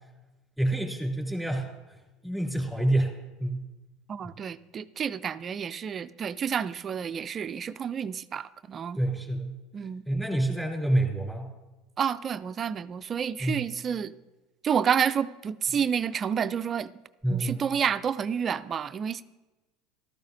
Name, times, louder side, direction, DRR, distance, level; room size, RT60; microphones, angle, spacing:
voice 1, 0.6-2.0 2.2-3.7 9.0-9.6 10.0-11.5 13.4-13.6 17.2-17.6, right 1 dB, 5° left, -1 dB, 2.8 m, -28 dB
voice 2, 4.1-9.0 9.7-10.0 12.0-14.1 14.6-16.9 17.3-19.2, right 7 dB, 35° right, 13 dB, 0.3 m, -29 dB
14.0 x 12.5 x 2.6 m, 1.1 s
supercardioid pair, 95°, 0 cm